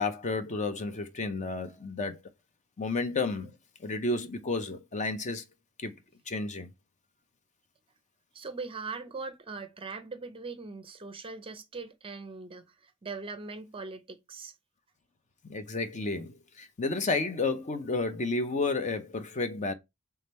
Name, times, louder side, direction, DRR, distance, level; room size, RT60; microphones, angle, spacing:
voice 1, 0.0-2.2 2.8-3.5 3.8-5.4 5.8-5.9 6.3-6.7 15.4-19.7, left 3 dB, 35° left, 0.5 m, -31 dB
voice 2, 8.3-14.5, right 4 dB, 25° right, 0.6 m, -41 dB
3.5 x 3.3 x 4.1 m
head